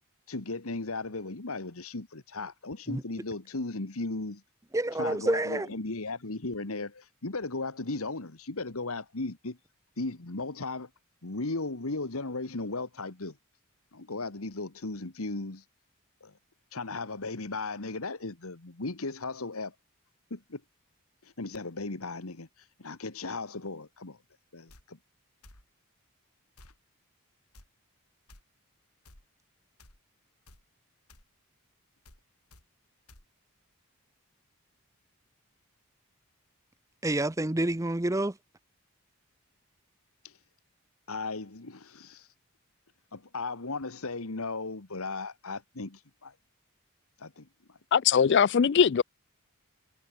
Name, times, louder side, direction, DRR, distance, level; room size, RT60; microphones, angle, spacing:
voice 1, 0.3-4.4 5.0-9.6 10.0-10.9 11.2-13.4 13.9-15.6 16.2-16.3 16.7-19.8 20.3-20.6 21.2-22.5 22.8-24.2 24.5-25.0 40.2-40.3 41.1-42.3 43.1-46.3 47.2-47.8, left 3 dB, 70° left, 1.6 m, -36 dB
voice 2, 4.7-5.7 37.0-38.3, right 1 dB, 15° right, 0.7 m, -28 dB
sound 1, 24.7-24.8 25.4-25.6 26.6-26.8 27.5-27.7 28.3-28.4 29.0-29.2 29.8-30.0 30.5-30.6 31.1-31.3 32.0-32.2 32.5-32.6 33.1-33.2, left 2 dB, 90° left, 7.5 m, -54 dB
voice 3, 47.9-49.0, left 7 dB, 50° left, 0.4 m, -21 dB
head